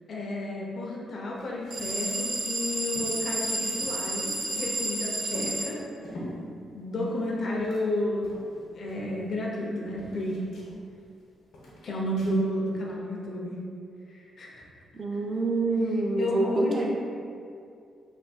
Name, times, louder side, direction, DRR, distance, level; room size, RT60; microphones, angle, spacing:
voice 1, 0.1-5.8 6.1-6.2 6.7-8.3 8.6-10.4 11.8-13.6 14.1-14.6 15.1-15.2 15.8-16.9, left 1 dB, 50° left, -3 dB, 0.6 m, -32 dB
sound 1, 1.3-2.0 2.3-2.4 2.6-4.9 5.3-6.4 7.0-9.7 10.0-11.2 11.5-12.4, equal, 80° left, 1.0 m, -43 dB
sound 2, 1.7-5.7, right 2 dB, 60° right, 1.0 m, -31 dB
voice 2, 14.9-16.9, right 2 dB, 35° right, 1 dB, 0.5 m, -26 dB
3.4 x 2.6 x 4.2 m, 2.4 s
cardioid pair, 120°, 0 cm